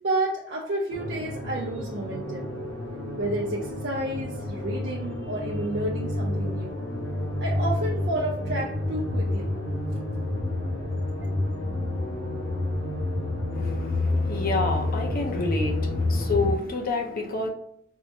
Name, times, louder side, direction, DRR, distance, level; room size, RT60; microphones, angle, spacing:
voice 1, 0.0-2.5 3.1-6.8 7.4-9.6, right 1 dB, 55° right, -3 dB, 0.5 m, -30 dB
sound 1, 0.9-16.5, left 1 dB, 65° left, 1.2 m, -29 dB
voice 2, 13.5-17.5, left 3 dB, 45° left, 2 dB, 0.6 m, -29 dB
4.5 x 2.1 x 2.7 m, 0.70 s
head